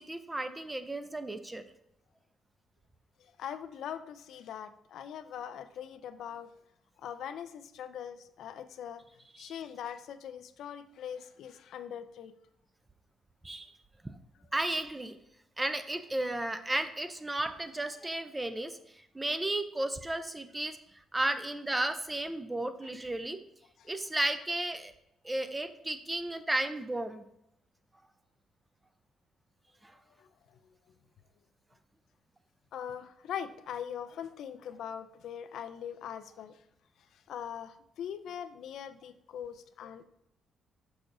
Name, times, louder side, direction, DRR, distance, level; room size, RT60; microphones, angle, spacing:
voice 1, 0.0-1.6 9.4-9.5 13.4-13.7 14.5-15.2 15.6-20.8 21.1-23.4 23.8-24.9 25.2-27.2 29.8-29.9, right 1 dB, 15° right, 10 dB, 0.5 m, -34 dB
voice 2, 3.2-6.5 7.0-9.0 9.4-12.3 22.8-22.9 23.8-23.9 30.2-30.6 32.7-36.6 37.1-40.0, left 9 dB, 75° left, 10 dB, 0.4 m, -42 dB
6.2 x 5.9 x 2.6 m, 0.80 s
cardioid pair, 90°, 0 cm